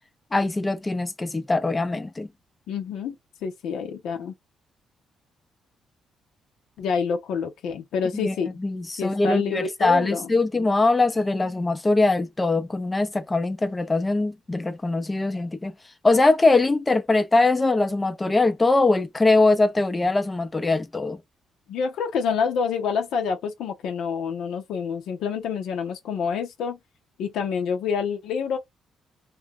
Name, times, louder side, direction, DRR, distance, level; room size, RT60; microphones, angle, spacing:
voice 1, 0.3-2.3 8.2-8.3 8.6-15.7 16.0-21.2, left 2 dB, 20° left, 0.5 m, -22 dB
voice 2, 2.7-3.1 3.4-4.3 6.8-8.6 9.0-10.7 21.7-26.8 27.2-28.6, left 6 dB, 80° left, 0.6 m, -27 dB
2.3 x 2.1 x 3.4 m
cardioid pair, 90°, 0 cm